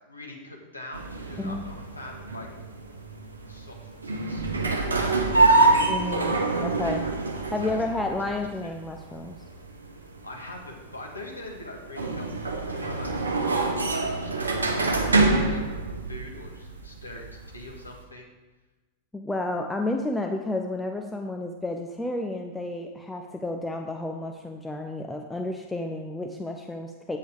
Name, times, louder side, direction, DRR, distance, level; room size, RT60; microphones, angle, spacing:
voice 1, 0.1-2.5 3.5-6.7 7.6-8.3 8.6-8.7 10.2-15.0 15.3-15.7 16.1-18.3, left 2 dB, 80° left, 0 dB, 1.6 m, -43 dB
sound 1, 0.9-18.0, right 2 dB, 75° right, 1.0 m, -26 dB
voice 2, 5.9-7.0 7.5-9.4 19.1-27.2, left 2 dB, 10° left, 3 dB, 0.6 m, -31 dB
8.3 x 7.8 x 5.0 m, 1.2 s
figure-of-eight pair, 90°, 0 cm